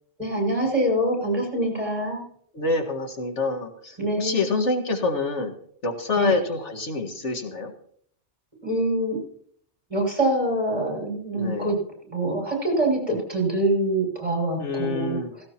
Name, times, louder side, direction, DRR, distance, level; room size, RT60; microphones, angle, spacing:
voice 1, 0.2-2.2 4.0-4.5 6.2-6.3 8.6-9.2 9.9-11.8 12.1-15.2, right 1 dB, 35° right, -1 dB, 6.3 m, -25 dB
voice 2, 2.5-5.5 5.8-7.7 11.4-11.8 14.6-15.3, left 3 dB, 90° left, 4 dB, 2.0 m, -26 dB
17.5 x 17.0 x 3.0 m, 0.63 s
omnidirectional pair, 1.2 m